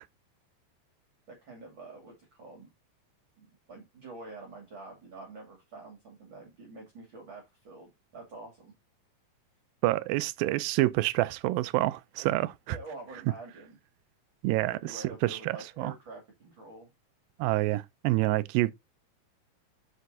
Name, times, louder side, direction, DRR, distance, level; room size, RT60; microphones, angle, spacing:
voice 1, 1.3-2.7 3.4-8.7 12.7-13.8 14.6-16.9, right 3 dB, 35° right, 2.7 m, -47 dB
voice 2, 9.8-12.8 14.4-15.9 17.4-18.7, right 18 dB, 80° right, 2.2 m, -28 dB
7.9 x 7.0 x 2.7 m
omnidirectional pair, 4.4 m